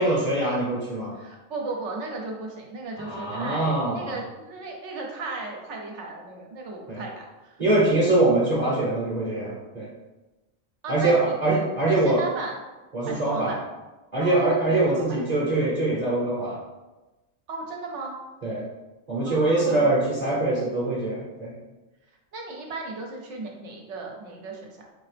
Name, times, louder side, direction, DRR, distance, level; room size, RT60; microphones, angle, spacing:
voice 1, 0.0-1.1 3.0-4.2 6.9-7.0 7.6-9.9 10.9-12.2 12.9-13.5 14.1-16.6 18.4-18.6 19.1-21.5, right 2 dB, 35° right, -7 dB, 0.8 m, -23 dB
voice 2, 1.1-7.5 10.8-11.3 11.9-12.6 13.0-13.6 14.2-15.2 17.5-18.2 19.2-19.9 22.3-24.9, right 3 dB, 65° right, 1 dB, 0.9 m, -36 dB
4.0 x 2.8 x 3.3 m, 1.1 s
omnidirectional pair, 1.4 m